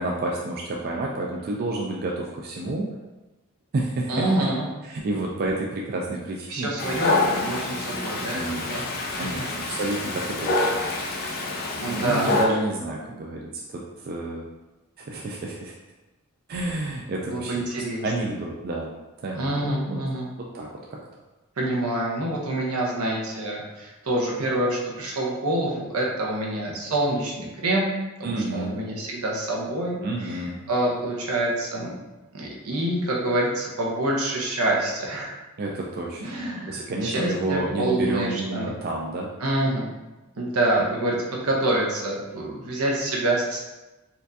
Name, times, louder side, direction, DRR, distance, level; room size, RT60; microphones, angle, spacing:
voice 1, 0.0-2.9 3.7-4.2 4.8-6.7 8.3-8.8 9.2-10.7 11.8-14.5 15.0-15.7 16.5-18.9 19.2-20.0 20.4-21.0 28.2-28.8 30.0-30.6 35.6-36.4 36.7-39.3, right 2 dB, 45° right, -2 dB, 0.3 m, -30 dB
voice 2, 4.1-4.7 6.5-8.4 8.7-9.0 11.8-12.3 17.3-18.0 19.3-20.3 21.6-27.9 28.2-31.9 32.3-35.4 36.2-38.7 39.4-39.9 40.4-43.6, right 1 dB, 80° right, -2 dB, 0.8 m, -26 dB
Dog, 6.8-12.5, left 2 dB, 45° left, 0.5 m, -27 dB
4.3 x 2.5 x 2.7 m, 1.1 s
head